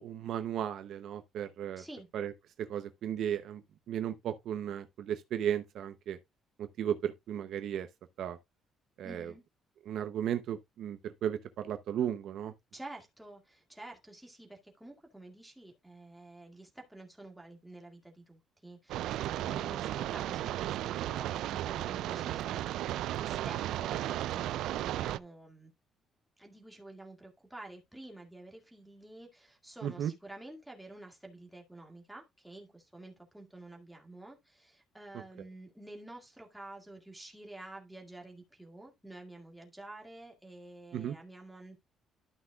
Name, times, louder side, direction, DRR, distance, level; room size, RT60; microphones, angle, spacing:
voice 1, 0.0-1.8 2.1-2.3 2.6-3.6 3.9-6.2 6.6-7.9 8.2-8.4 9.0-9.3 9.9-12.5 29.8-30.1 40.9-41.1, right 9 dB, 60° right, 0.7 m, -35 dB
voice 2, 1.8-2.1 9.0-9.4 12.7-25.7 26.4-41.8, right 2 dB, 5° right, 2.1 m, -50 dB
sound 1, 18.9-25.2, right 13 dB, 80° right, 0.3 m, -34 dB
12.5 x 5.8 x 2.4 m
cardioid pair, 155°, 0 cm